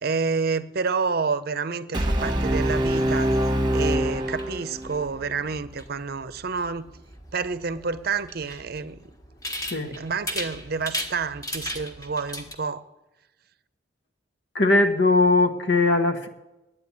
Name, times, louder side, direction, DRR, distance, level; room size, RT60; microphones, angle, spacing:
voice 1, 0.0-3.3 3.7-6.9 7.3-9.0 9.8-12.8, right 5 dB, 55° right, 14 dB, 0.6 m, -29 dB
Brass instrument, 1.9-5.0, right 1 dB, 25° right, 1.2 m, -24 dB
sound 1, 4.1-12.5, left 1 dB, 20° left, 1.4 m, -37 dB
voice 2, 9.6-9.9 14.5-16.3, left 2 dB, 70° left, 5 dB, 1.3 m, -20 dB
9.6 x 8.9 x 9.8 m, 1.0 s
head